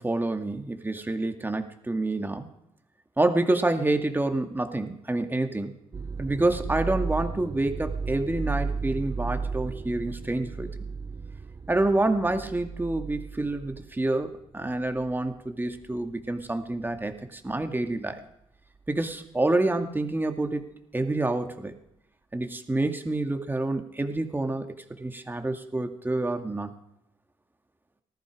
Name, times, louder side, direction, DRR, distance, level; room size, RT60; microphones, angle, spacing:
voice 1, 0.0-2.5 3.2-5.7 6.2-10.7 11.7-18.2 18.9-21.7 22.3-26.7, right 2 dB, 15° right, 6 dB, 2.2 m, -28 dB
sound 1, 5.9-15.4 15.7-16.2 16.9-17.1, right 5 dB, 30° right, 0.6 m, -34 dB
18.5 x 14.0 x 4.9 m, 0.79 s
cardioid pair, 70°, 12 cm